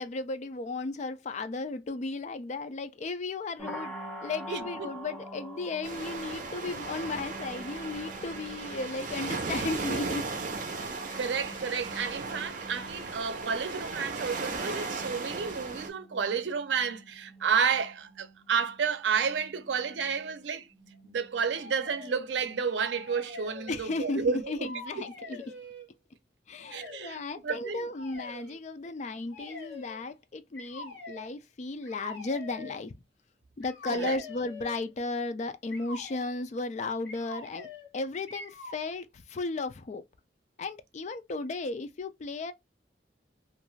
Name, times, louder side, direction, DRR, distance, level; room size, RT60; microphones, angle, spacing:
voice 1, 0.0-3.9 4.2-10.2 23.7-25.5 26.5-32.9 33.6-37.7 37.9-40.0 40.6-42.5, left 3 dB, 40° left, 0.4 m, -35 dB
sound 1, 3.6-23.4, right 1 dB, ahead, 0.6 m, -47 dB
voice 2, 4.5-4.9 10.8-20.7 21.0-24.7 25.0-25.1 26.7-27.9 33.9-34.2, right 6 dB, 90° right, 0.5 m, -31 dB
sound 2, 5.8-15.9, right 3 dB, 50° right, 0.6 m, -36 dB
sound 3, 21.5-22.4 22.8-24.3 24.6-25.9 26.6-27.1 27.9-28.6 29.3-30.0 30.5-31.3 31.8-32.8 33.6-34.8 35.7-36.2 37.0-37.9 38.3-38.9, left 3 dB, 85° left, 1.4 m, -45 dB
2.5 x 2.3 x 3.0 m
head